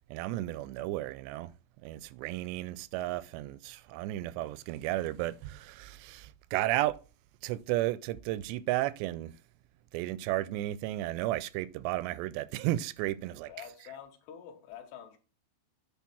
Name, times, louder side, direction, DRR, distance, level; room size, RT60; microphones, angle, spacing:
voice 1, 0.1-1.5 1.8-7.0 7.4-9.3 9.9-13.5, right 16 dB, 90° right, 2.8 m, -33 dB
voice 2, 13.5-15.2, left 9 dB, 80° left, 3.4 m, -47 dB
9.5 x 4.2 x 6.0 m
omnidirectional pair, 4.9 m